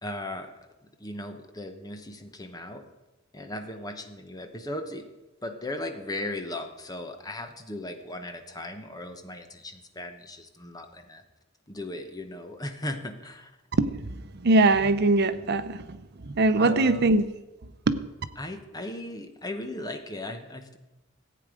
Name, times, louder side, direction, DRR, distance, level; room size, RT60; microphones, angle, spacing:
voice 1, 0.0-0.5 1.0-2.8 3.3-5.0 5.4-11.2 11.7-13.5 16.6-17.1 18.4-20.8, left 1 dB, 20° left, 6 dB, 1.0 m, -37 dB
voice 2, 13.7-17.2 17.9-18.0, right 2 dB, 55° right, 11 dB, 0.7 m, -22 dB
14.5 x 8.7 x 5.0 m, 1.0 s
head